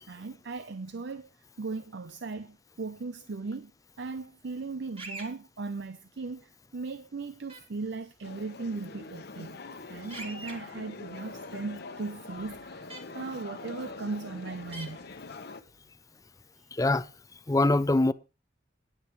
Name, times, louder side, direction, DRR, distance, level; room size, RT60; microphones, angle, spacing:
voice 1, 0.1-1.3 1.6-3.7 4.0-9.6 9.9-15.0 16.6-16.7, right 3 dB, 65° right, 0.6 m, -38 dB
sound 1, 5.0-5.3 7.5-7.6 10.1-10.5 12.9-13.0 14.7-14.9, right 2 dB, 30° right, 2.8 m, -41 dB
sound 2, 8.2-15.6, left 3 dB, 60° left, 1.1 m, -44 dB
voice 2, 16.7-17.1 17.5-18.1, left 2 dB, 20° left, 0.5 m, -23 dB
20.0 x 8.8 x 3.1 m
head